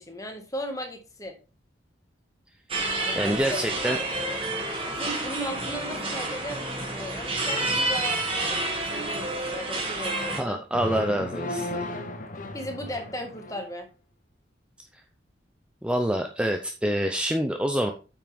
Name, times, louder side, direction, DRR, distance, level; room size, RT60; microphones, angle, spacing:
voice 1, 0.0-1.3 3.0-3.6 3.8-4.0 4.9-10.6 12.5-13.9, equal, 20° left, 3 dB, 1.7 m, -36 dB
sound 1, 2.7-10.4, right 2 dB, 30° right, 2.1 m, -29 dB
voice 2, 3.2-4.0 10.4-11.9 15.8-17.9, right 1 dB, 5° right, 4 dB, 0.6 m, -26 dB
sound 2, 10.7-13.7, left 1 dB, 45° left, 1.0 m, -35 dB
8.7 x 6.0 x 3.5 m, 0.33 s
head